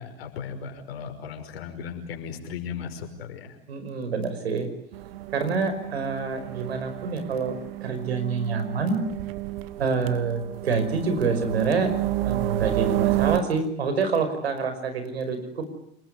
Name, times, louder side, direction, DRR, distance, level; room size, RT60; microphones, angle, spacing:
voice 1, 0.0-3.6, left 6 dB, 75° left, 5 dB, 5.6 m, -36 dB
voice 2, 3.7-4.7 5.3-9.0 9.8-11.9 12.2-15.7, right 4 dB, 85° right, 8 dB, 5.5 m, -27 dB
sound 1, 4.9-13.4, right 16 dB, 65° right, 1.4 m, -30 dB
28.5 x 20.0 x 9.7 m, 0.74 s
hypercardioid pair, 90°, 31 cm